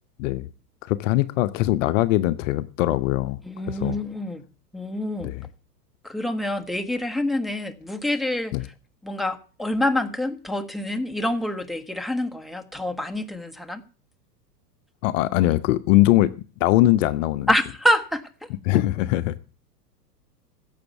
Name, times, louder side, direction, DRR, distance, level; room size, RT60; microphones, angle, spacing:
voice 1, 0.8-3.4 3.7-4.0 5.2-5.4 8.5-8.6 15.0-16.3 16.6-17.5 18.6-19.3, left 16 dB, 50° left, 0.8 m, -21 dB
voice 2, 3.4-4.4 4.7-5.4 6.0-8.5 9.0-13.8 17.5-18.5, left 1 dB, ahead, 1.3 m, -26 dB
15.5 x 7.3 x 8.2 m
hypercardioid pair, 105°, 50 cm